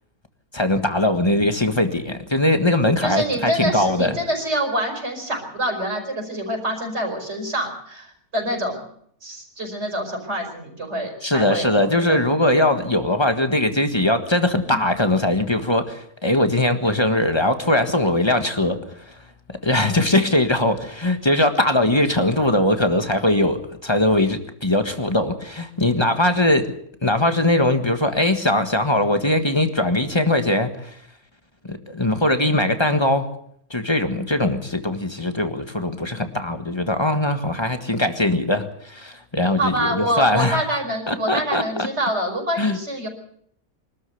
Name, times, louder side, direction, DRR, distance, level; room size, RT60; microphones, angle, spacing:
voice 1, 0.5-4.2 11.2-18.8 19.1-19.2 19.6-26.7 27.0-31.0 31.6-33.3 33.7-40.6 41.1-41.9 42.6-42.8, left 1 dB, 20° left, 7 dB, 1.6 m, -20 dB
voice 2, 3.0-8.8 9.2-12.2 14.7-14.8 39.6-43.1, right 1 dB, 50° right, 3 dB, 5.3 m, -26 dB
24.0 x 13.5 x 8.2 m, 0.68 s
omnidirectional pair, 1.5 m